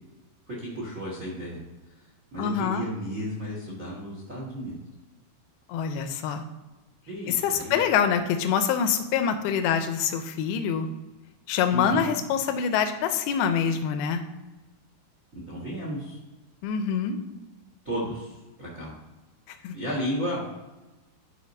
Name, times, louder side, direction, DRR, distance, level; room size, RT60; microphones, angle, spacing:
voice 1, 0.5-1.6 2.3-4.8 7.1-7.8 11.7-12.1 15.3-16.2 17.8-18.9 19.7-20.4, equal, 50° right, -4 dB, 0.9 m, -33 dB
voice 2, 2.4-2.9 5.7-6.4 7.3-10.9 11.5-14.2 16.6-17.2 19.6-19.7, left 7 dB, 90° left, 8 dB, 2.6 m, -25 dB
11.0 x 5.1 x 2.7 m, 1.1 s
omnidirectional pair, 4.4 m